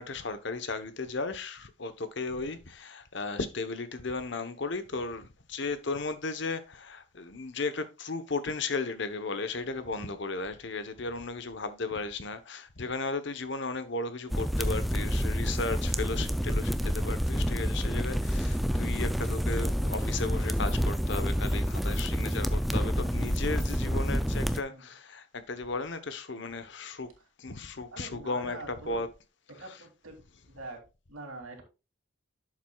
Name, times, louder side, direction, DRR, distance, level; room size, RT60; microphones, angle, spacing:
voice 1, 0.0-27.1 27.4-29.1 29.5-29.8, left 3 dB, 55° left, 1.0 m, -35 dB
sound 1, 14.3-24.6, equal, ahead, 0.3 m, -28 dB
voice 2, 27.9-29.0 29.5-30.2 30.5-30.8 31.1-31.6, right 2 dB, 90° right, 2.8 m, -44 dB
11.0 x 7.5 x 2.3 m
head